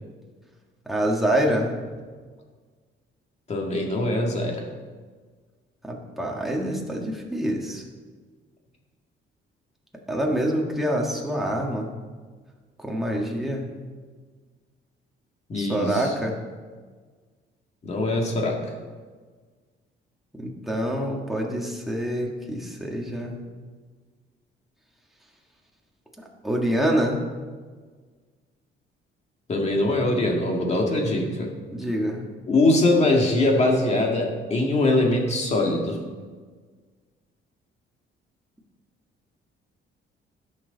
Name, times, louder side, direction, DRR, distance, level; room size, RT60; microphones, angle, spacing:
voice 1, 0.8-1.7 5.8-7.8 10.1-11.9 12.8-13.7 15.6-16.4 20.3-23.4 26.2-27.2 31.7-32.3, right 1 dB, ahead, -1 dB, 1.6 m, -26 dB
voice 2, 3.5-4.7 15.5-16.1 17.8-18.6 29.5-31.5 32.5-36.0, left 2 dB, 30° left, 0 dB, 2.0 m, -22 dB
16.5 x 6.5 x 4.0 m, 1.5 s
cardioid pair, 145°, 21 cm